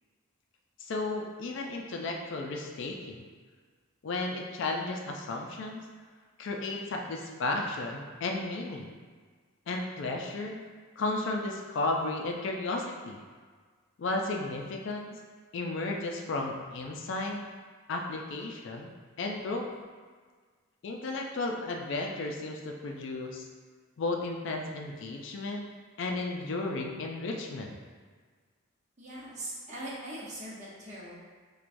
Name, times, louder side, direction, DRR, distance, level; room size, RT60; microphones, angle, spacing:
voice 1, 0.8-3.2 4.0-5.8 6.4-8.9 9.7-10.6 11.0-13.2 14.0-15.1 15.5-17.4 17.9-19.7 20.8-23.4 24.0-25.6 26.0-27.7, left 2 dB, 60° left, 1 dB, 0.4 m, -34 dB
voice 2, 29.0-31.2, right 1 dB, 35° right, -6 dB, 0.8 m, -41 dB
4.4 x 2.3 x 2.5 m, 1.5 s
head